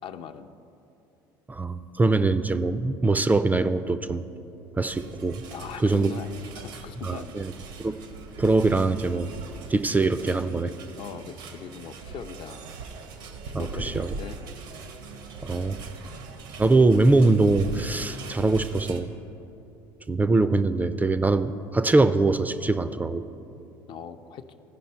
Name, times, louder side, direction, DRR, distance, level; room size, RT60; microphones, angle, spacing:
voice 1, 0.0-0.5 5.4-7.5 11.0-12.7 13.5-14.4 23.9-24.4, left 8 dB, 50° left, 8 dB, 0.5 m, -40 dB
voice 2, 1.5-4.2 4.8-5.4 5.8-6.1 7.0-7.5 7.8-8.0 8.4-9.3 9.7-10.7 13.5-14.1 15.4-15.8 16.6-19.1 20.1-23.2, right 3 dB, 15° right, 12 dB, 0.3 m, -22 dB
sound 1, 4.9-19.0, right 4 dB, 75° right, 0.8 m, -40 dB
14.5 x 5.3 x 4.4 m, 2.9 s
hypercardioid pair, 70°, 11 cm